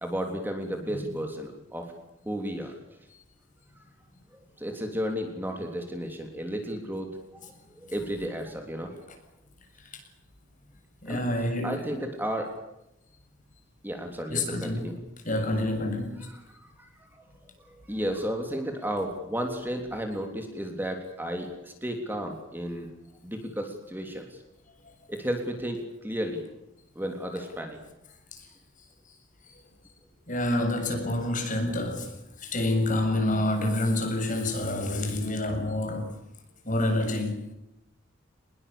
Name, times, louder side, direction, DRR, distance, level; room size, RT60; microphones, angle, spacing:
voice 1, 0.0-1.9 2.2-2.7 4.6-9.0 11.0-11.2 11.6-12.5 13.8-14.9 16.3-16.4 16.8-22.9 23.2-24.4 25.1-26.4 26.9-27.8, equal, 10° right, 3.3 m, -33 dB
voice 2, 11.0-11.8 14.3-14.9 15.2-16.3 28.3-28.5 30.3-32.1 32.4-36.2 36.7-37.4, left 1 dB, 40° left, 7.5 m, -28 dB
25.5 x 21.5 x 8.7 m
head